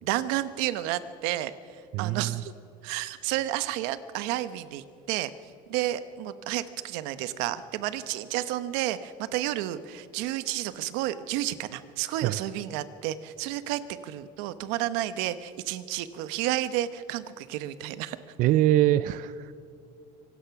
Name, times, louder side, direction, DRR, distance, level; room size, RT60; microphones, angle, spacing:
voice 1, 0.0-2.5 2.8-18.2, right 14 dB, 80° right, 13 dB, 1.1 m, -31 dB
voice 2, 1.9-2.4 12.2-12.4 18.4-19.5, right 14 dB, 55° right, 15 dB, 0.5 m, -23 dB
25.5 x 18.5 x 6.0 m, 2.7 s
cardioid pair, 140°, 17 cm